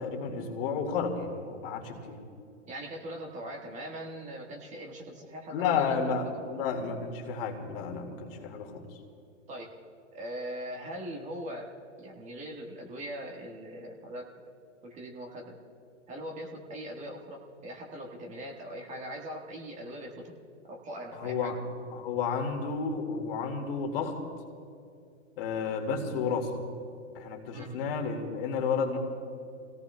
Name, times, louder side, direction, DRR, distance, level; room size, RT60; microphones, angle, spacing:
voice 1, 0.0-2.2 5.5-8.9 21.2-21.6 21.9-24.2 25.4-26.5 27.1-29.0, left 5 dB, 45° left, 3 dB, 2.1 m, -31 dB
voice 2, 2.7-6.3 8.3-8.5 9.5-9.7 10.1-14.3 14.8-15.6 16.1-20.3 20.6-21.5 27.5-27.8, right 1 dB, 20° right, 0 dB, 1.6 m, -41 dB
28.5 x 17.5 x 2.3 m, 2.5 s
hypercardioid pair, 130°, 38 cm